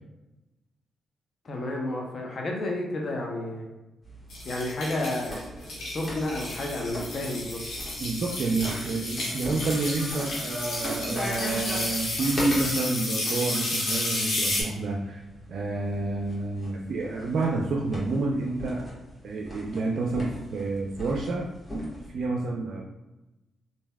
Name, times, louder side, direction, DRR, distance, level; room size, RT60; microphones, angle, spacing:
voice 1, 1.4-3.6 4.4-7.6, left 1 dB, 55° left, 0 dB, 0.6 m, -31 dB
sound 1, 4.0-12.6 13.9-22.1, equal, 30° left, 1.3 m, -39 dB
sound 2, 4.3-14.6, left 2 dB, 75° left, 1.1 m, -32 dB
voice 2, 8.0-15.2 15.5-19.0 19.2-21.5 22.1-22.8, right 3 dB, 65° right, 0 dB, 0.4 m, -29 dB
Shatter, 9.6-14.4, equal, 5° right, 1.2 m, -42 dB
3.2 x 2.6 x 2.2 m, 1.0 s
supercardioid pair, 50°, 0 cm